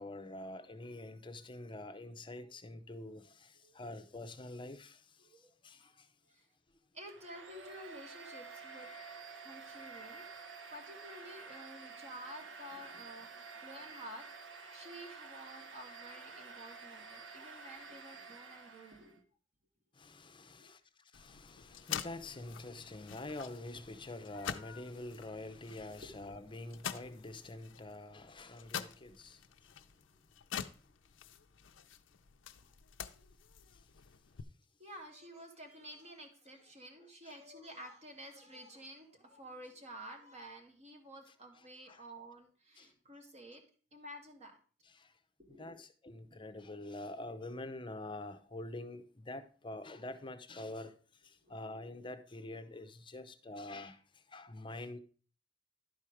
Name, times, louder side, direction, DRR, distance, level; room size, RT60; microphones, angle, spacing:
voice 1, 0.0-5.0 5.6-6.1 20.0-20.8 21.1-29.7 37.2-37.4 41.9-42.0 42.8-42.9 44.9-45.1 45.6-50.9 51.2-54.0 54.3-55.0, left 2 dB, 25° left, 0.7 m, -46 dB
voice 2, 3.6-4.1 5.2-6.5 6.9-8.9 9.4-10.3 10.7-19.2 20.6-20.7 25.9-26.2 32.6-32.7 33.1-33.3 34.8-43.6 43.9-44.6 45.4-45.8 46.3-46.5 51.4-51.9, equal, 35° right, 1.6 m, -52 dB
Domestic sounds home sounds, 7.1-19.2, right 4 dB, 70° right, 1.0 m, -50 dB
sound 1, 21.1-34.4, left 8 dB, 80° left, 0.5 m, -47 dB
11.5 x 4.5 x 4.9 m
head